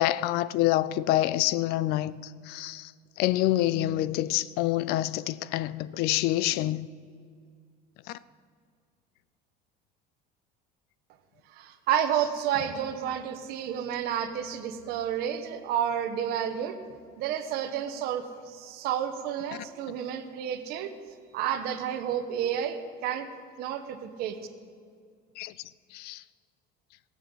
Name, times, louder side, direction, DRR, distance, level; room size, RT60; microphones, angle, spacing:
voice 1, 0.0-2.9 3.2-6.9 8.1-8.2 25.4-25.5 25.9-26.2, left 15 dB, 60° left, 0.5 m, -27 dB
voice 2, 11.6-16.8 17.2-20.9 21.3-23.3 23.6-24.4, right 9 dB, 55° right, 1.2 m, -30 dB
18.0 x 7.3 x 7.9 m
cardioid pair, 170°, 19 cm